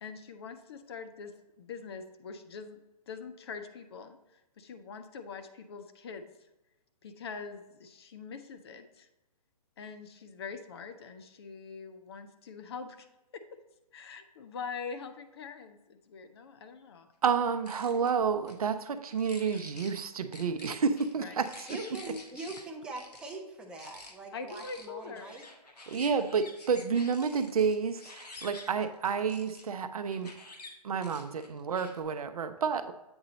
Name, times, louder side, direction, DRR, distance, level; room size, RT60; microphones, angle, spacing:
voice 1, 0.0-2.8 3.1-6.3 7.0-9.1 9.8-13.1 13.3-13.4 13.9-17.1 21.2-21.3 24.3-25.3, left 5 dB, 40° left, 8 dB, 0.6 m, -43 dB
voice 2, 17.2-21.7 25.9-30.3 30.8-32.9, right 6 dB, 65° right, 10 dB, 0.6 m, -30 dB
sound 1, 17.4-18.1 18.5-18.6 19.1-20.0 20.3-22.6 23.0-23.4 23.8-24.1 24.5-29.6 30.1-30.7 31.0-32.0, left 2 dB, 80° left, 1.3 m, -49 dB
voice 3, 21.7-25.5, right 2 dB, 5° right, 1 dB, 0.5 m, -42 dB
7.9 x 4.0 x 4.0 m, 0.95 s
figure-of-eight pair, 140°, 21 cm